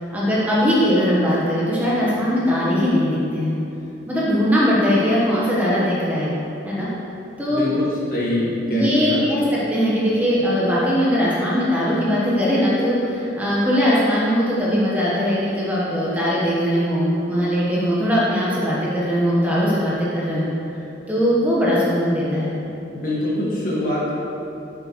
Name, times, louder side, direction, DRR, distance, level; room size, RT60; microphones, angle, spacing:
voice 1, 0.0-3.5 4.1-6.3 6.6-6.9 7.4-7.7 8.7-20.5 21.1-22.5, equal, 10° right, -8 dB, 1.0 m, -20 dB
voice 2, 7.5-9.2 22.9-24.1, left 1 dB, 50° left, -7 dB, 1.7 m, -24 dB
7.9 x 7.1 x 3.0 m, 2.8 s
head